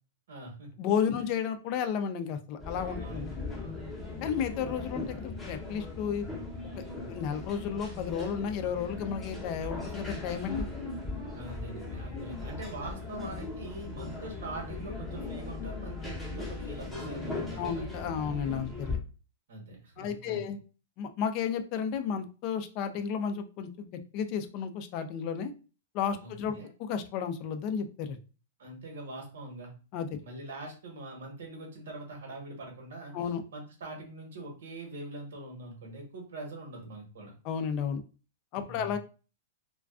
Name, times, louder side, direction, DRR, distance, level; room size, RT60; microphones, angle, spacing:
voice 1, 0.3-0.7 1.2-1.3 3.0-3.9 11.3-17.8 19.5-20.5 26.2-26.7 28.6-29.7 30.2-33.2 33.5-37.3 38.6-39.0, right 2 dB, 75° right, 1 dB, 1.0 m, -43 dB
voice 2, 0.8-3.3 4.2-6.2 7.1-10.7 17.6-19.0 20.0-20.6 21.0-23.9 24.1-25.5 25.9-26.5 26.8-28.2 29.9-30.2 33.1-33.4 37.4-38.0 38.5-39.0, left 7 dB, 40° left, 8 dB, 0.3 m, -32 dB
sound 1, 2.6-19.0, left 3 dB, 5° left, 0.7 m, -38 dB
2.4 x 2.2 x 2.3 m, 0.35 s
hypercardioid pair, 150°, 0 cm